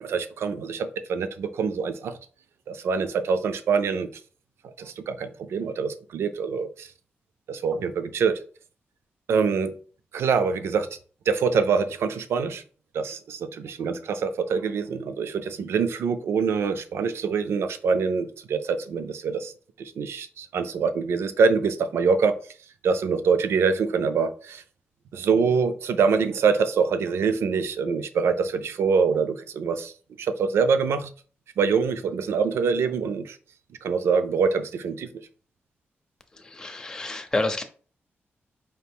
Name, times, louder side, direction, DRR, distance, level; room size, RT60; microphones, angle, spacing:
voice 1, 0.0-2.2 2.7-4.1 4.8-6.9 7.5-8.4 9.3-9.7 10.1-10.9 11.3-12.6 12.9-19.5 19.8-22.4 22.8-24.6 25.1-29.9 30.2-31.1 31.6-33.4 33.8-35.1, right 5 dB, 80° right, 10 dB, 0.4 m, -25 dB
voice 2, 36.3-37.6, left 2 dB, 15° left, 6 dB, 0.5 m, -29 dB
4.5 x 2.4 x 3.4 m, 0.41 s
wide cardioid pair, 135°, 4 cm